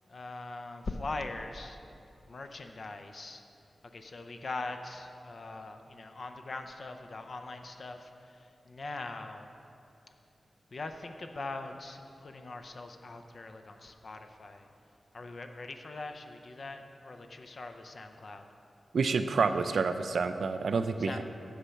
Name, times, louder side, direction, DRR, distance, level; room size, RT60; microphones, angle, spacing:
voice 1, 0.1-1.8 2.3-3.4 3.8-9.5 10.7-14.7 15.1-18.4 21.0-21.2, left 3 dB, 50° left, 6 dB, 0.5 m, -42 dB
voice 2, 18.9-21.2, right 4 dB, 85° right, 9 dB, 0.4 m, -28 dB
8.2 x 7.2 x 5.7 m, 2.7 s
wide cardioid pair, 155°, 0 cm